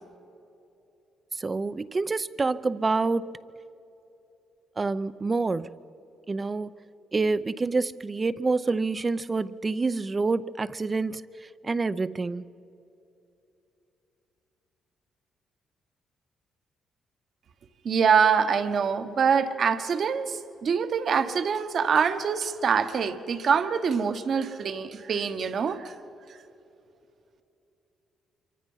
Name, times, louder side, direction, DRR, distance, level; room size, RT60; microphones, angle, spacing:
voice 1, 1.4-3.3 4.8-5.7 6.3-6.7 7.1-11.2 11.6-12.4, right 3 dB, 30° right, 0.7 m, -27 dB
voice 2, 17.8-25.9, right 6 dB, 55° right, 1.3 m, -25 dB
26.0 x 24.0 x 5.6 m
cardioid pair, 90°, 0 cm